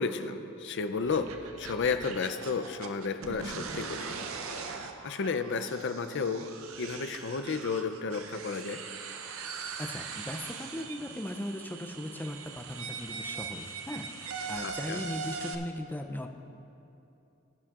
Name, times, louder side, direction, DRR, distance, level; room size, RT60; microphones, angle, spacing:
voice 1, 0.0-1.3 1.6-4.2 4.6-6.5 6.8-8.8 14.6-15.0, left 5 dB, 60° left, 9 dB, 0.5 m, -32 dB
sound 1, 1.0-15.6, right 5 dB, 80° right, 0.6 m, -41 dB
voice 2, 9.8-16.3, left 1 dB, 10° left, 5 dB, 0.5 m, -38 dB
21.0 x 7.3 x 2.5 m, 2.8 s
head